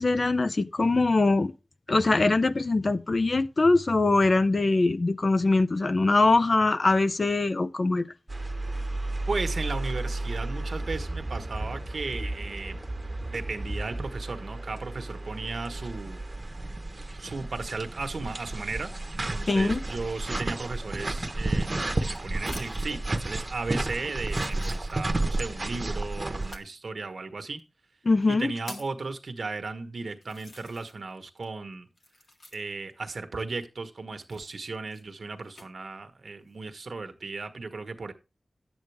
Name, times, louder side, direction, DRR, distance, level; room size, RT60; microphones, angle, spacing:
voice 1, 0.0-1.5 1.9-8.1 19.5-19.8 28.1-28.5, left 3 dB, 50° left, 0.6 m, -22 dB
sound 1, 8.3-26.6, right 2 dB, 35° right, 1.0 m, -32 dB
voice 2, 9.3-12.8 13.3-16.2 17.2-27.6 28.3-31.9 32.5-38.1, right 3 dB, 75° right, 1.3 m, -35 dB
sound 2, 21.3-23.0 23.7-23.8 24.2-25.3 26.4-26.7 27.6-27.7 28.2-29.0 29.7-29.8 30.2-31.1 31.4-32.9 34.1-35.7 36.3-36.8, left 2 dB, 75° left, 1.8 m, -48 dB
10.5 x 8.1 x 3.4 m
wide cardioid pair, 65°, 0 cm